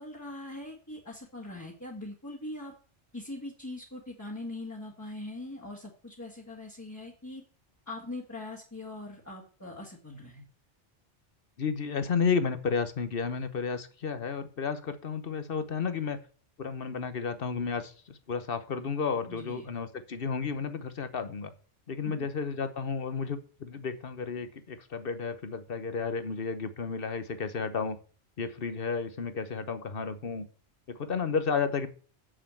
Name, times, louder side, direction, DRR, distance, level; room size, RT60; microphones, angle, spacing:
voice 1, 0.0-2.7 3.1-7.4 7.9-10.4 19.3-19.7 22.0-22.3, left 2 dB, 15° left, -3 dB, 1.8 m, -41 dB
voice 2, 11.6-16.2 16.6-21.5 21.9-28.0 28.4-30.5 30.9-31.9, left 5 dB, 55° left, 11 dB, 1.2 m, -32 dB
6.7 x 6.4 x 7.7 m, 0.40 s
omnidirectional pair, 1.2 m